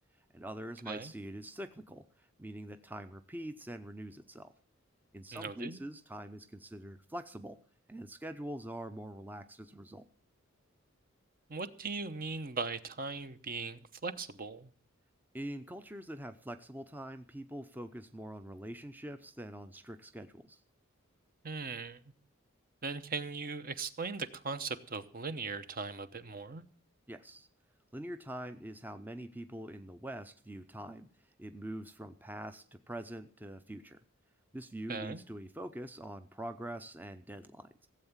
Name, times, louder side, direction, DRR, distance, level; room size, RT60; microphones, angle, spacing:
voice 1, 0.3-4.5 5.1-7.6 7.9-10.0 15.3-20.6 27.1-27.5 27.9-31.1 31.4-34.0 34.5-37.9, right 1 dB, 10° right, 9 dB, 0.6 m, -44 dB
voice 2, 5.3-5.8 11.5-14.7 21.4-22.0 22.8-26.6 34.9-35.2, right 4 dB, 45° right, 11 dB, 0.9 m, -39 dB
16.0 x 8.0 x 7.3 m, 0.43 s
head